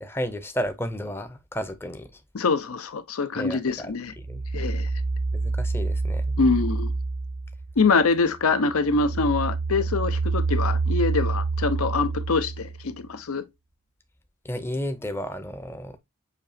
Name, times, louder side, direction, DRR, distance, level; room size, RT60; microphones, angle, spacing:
voice 1, 0.0-2.2 3.4-4.4 5.3-6.4 14.4-16.0, equal, 10° left, 0.5 m, -33 dB
voice 2, 2.3-4.1 4.5-4.9 6.4-6.9 7.8-13.4, left 4 dB, 85° left, 0.7 m, -24 dB
sound 1, 4.2-8.0 8.4-13.0, right 3 dB, 45° right, 0.3 m, -27 dB
6.8 x 2.8 x 2.7 m
head